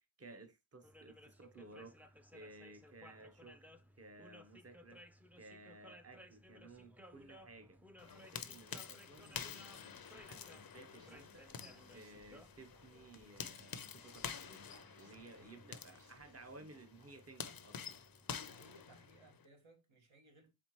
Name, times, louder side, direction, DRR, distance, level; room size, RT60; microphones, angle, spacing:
voice 1, 0.0-2.0 2.3-3.6 4.0-5.0 5.4-11.6 11.9-14.7 15.0-18.0, right 2 dB, 30° right, 0.8 m, -57 dB
sound 1, 0.8-19.3, equal, 5° right, 0.4 m, -61 dB
sound 2, 8.0-19.4, left 7 dB, 50° left, 0.5 m, -49 dB
sound 3, 9.1-17.1, right 1 dB, 45° right, 2.2 m, -67 dB
voice 2, 18.4-20.5, right 2 dB, 70° right, 1.6 m, -64 dB
4.3 x 3.7 x 3.0 m
wide cardioid pair, 55°, 49 cm